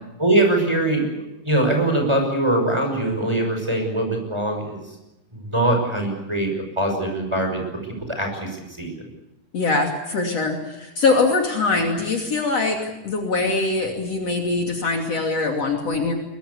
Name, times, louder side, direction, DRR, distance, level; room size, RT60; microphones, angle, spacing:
voice 1, 0.2-1.1 1.4-4.8 5.3-7.6 8.1-9.1, right 1 dB, 10° right, 2 dB, 6.1 m, -22 dB
voice 2, 9.5-16.1, left 3 dB, 55° left, 2 dB, 3.7 m, -22 dB
23.0 x 22.0 x 8.4 m, 0.93 s
omnidirectional pair, 3.5 m